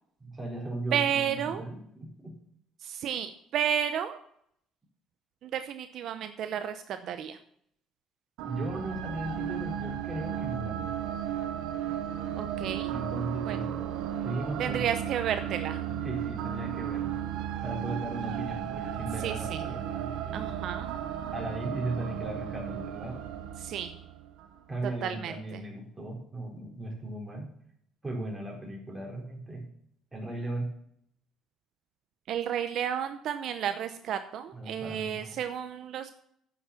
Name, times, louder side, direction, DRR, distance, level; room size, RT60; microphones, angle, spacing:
voice 1, 0.2-2.3 8.4-10.9 12.9-13.8 14.2-14.9 16.0-17.2 17.6-20.5 21.3-23.2 24.7-27.5 28.0-29.6 30.1-30.7 34.5-35.4, right 2 dB, 15° right, -1 dB, 4.5 m, -37 dB
voice 2, 0.9-1.6 2.8-4.2 5.4-7.4 12.3-12.9 13.5-13.6 14.6-15.8 19.2-19.6 20.3-20.9 23.6-23.9 25.0-25.6 32.3-36.1, right 9 dB, 65° right, 9 dB, 0.8 m, -32 dB
sound 1, 8.4-24.6, right 10 dB, 85° right, 1.1 m, -35 dB
9.3 x 7.2 x 7.2 m, 0.68 s
cardioid pair, 105°, 0 cm